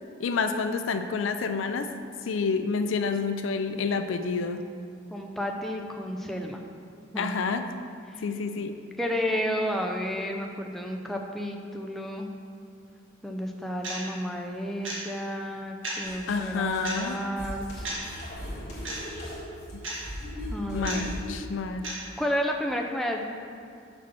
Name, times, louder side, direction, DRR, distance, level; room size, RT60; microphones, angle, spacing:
voice 1, 0.2-1.9 2.3-4.6 7.2-7.6 8.2-8.8 16.3-17.2 20.7-21.8, left 4 dB, 70° left, 8 dB, 0.4 m, -28 dB
voice 2, 5.1-6.6 7.1-7.4 9.0-12.3 13.2-17.9 20.5-21.1 22.2-23.2, equal, ahead, 1 dB, 0.5 m, -31 dB
sound 1, 13.8-14.0 14.8-15.0 15.8-16.0 16.8-17.0 17.8-18.0 18.8-19.0 19.8-20.0 20.8-21.0 21.8-21.9, right 2 dB, 75° right, 1.8 m, -33 dB
sound 2, 16.0-21.4, left 1 dB, 40° left, 1.7 m, -38 dB
6.1 x 4.3 x 6.2 m, 2.5 s
head